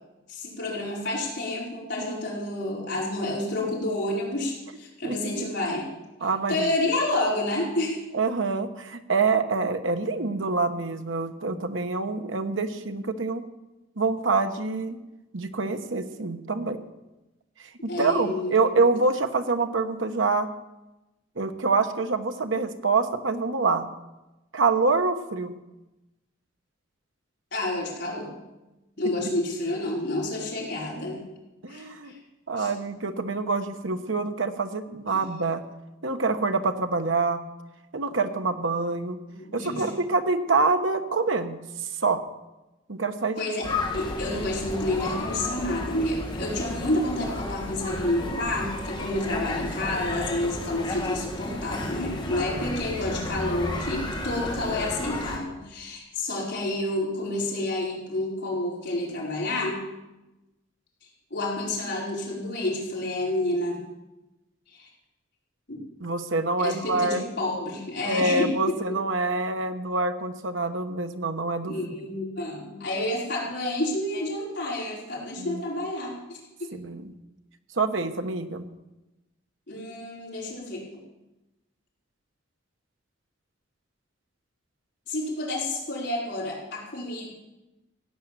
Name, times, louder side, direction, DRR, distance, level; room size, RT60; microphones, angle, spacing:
voice 1, 0.3-5.9 6.5-8.0 17.9-18.9 27.5-28.3 29.0-31.2 31.7-32.2 32.6-32.7 35.1-35.2 39.3-39.9 43.4-59.8 61.3-63.8 64.7-64.9 65.7-65.8 66.6-68.7 71.7-76.7 79.7-80.8 85.1-87.3, left 1 dB, 55° left, -4 dB, 4.9 m, -29 dB
voice 2, 5.0-5.5 6.2-6.6 8.1-13.4 14.0-15.0 15.3-16.8 17.8-20.5 21.4-23.9 24.5-25.5 31.6-32.2 32.5-35.6 36.0-37.4 37.9-39.2 39.5-42.2 42.9-43.4 66.0-67.2 68.0-71.7 75.4-75.6 76.7-77.1 77.8-78.6, right 3 dB, 75° right, 7 dB, 1.2 m, -26 dB
sound 1, 43.6-55.4, left 2 dB, 25° left, 2.4 m, -33 dB
16.0 x 9.3 x 7.5 m, 1.0 s
head